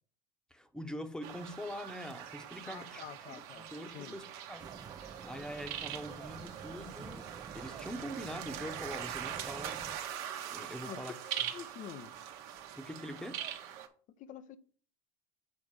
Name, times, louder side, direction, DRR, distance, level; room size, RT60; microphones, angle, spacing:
voice 1, 0.5-4.7 5.2-9.9 10.5-11.1 12.8-13.4, equal, 5° left, 1.1 m, -44 dB
sound 1, 1.2-13.9, right 10 dB, 65° right, 1.2 m, -43 dB
voice 2, 2.7-3.7 3.9-4.2 10.8-11.1 11.5-12.1 14.2-14.6, left 9 dB, 45° left, 0.8 m, -47 dB
sound 2, 4.6-10.0, right 5 dB, 20° right, 0.6 m, -49 dB
7.5 x 3.8 x 4.8 m
hypercardioid pair, 80°, 18 cm